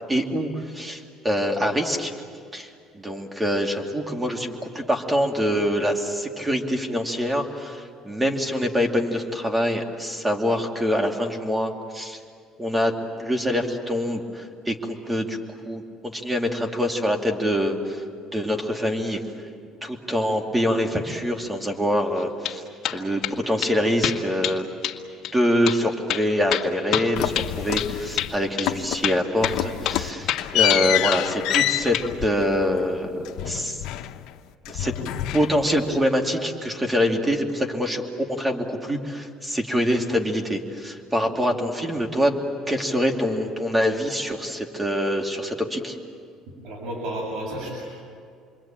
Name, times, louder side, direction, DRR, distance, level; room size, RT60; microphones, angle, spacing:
voice 1, 0.1-2.1 2.5-12.2 12.6-12.9 13.2-15.4 15.6-18.0 18.3-19.2 19.8-22.6 22.9-24.7 25.3-33.8 34.7-34.9 35.3-42.3 42.7-46.0, equal, 10° right, 3 dB, 2.6 m, -25 dB
sound 1, 22.2-22.6 22.8-23.4 23.6-23.7 24.0-24.6 24.8-25.0 25.2-25.3 25.7-25.8 26.1-27.9 28.2-28.3 28.6-28.7 29.0-29.6 29.8-30.0 30.3-31.3 31.5-32.1, left 12 dB, 55° left, 1.9 m, -27 dB
sound 2, 27.1-28.4 28.6-29.1 29.4-34.4 34.6-35.9, left 13 dB, 70° left, 1.0 m, -27 dB
voice 2, 46.5-47.9, right 1 dB, 65° right, -2 dB, 7.4 m, -32 dB
28.5 x 22.5 x 8.9 m, 2.2 s
cardioid pair, 140°, 0 cm